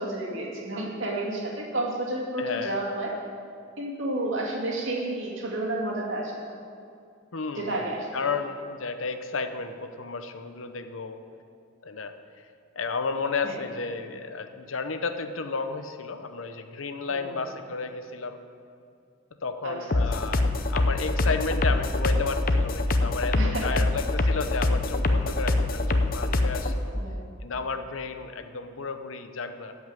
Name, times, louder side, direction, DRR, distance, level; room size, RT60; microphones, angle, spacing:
voice 1, 0.0-3.1 3.8-6.4 7.6-8.3 13.4-13.6 17.1-17.4 19.6-20.0 23.3-23.7 26.9-27.3, right 1 dB, 70° right, -2 dB, 2.3 m, -31 dB
voice 2, 2.4-2.8 7.3-11.2 11.8-12.1 12.8-18.4 19.4-26.9 27.4-29.7, left 4 dB, 80° left, 8 dB, 0.8 m, -32 dB
sound 1, 19.9-26.7, left 2 dB, 45° left, 0.7 m, -24 dB
14.0 x 5.5 x 9.0 m, 2.4 s
head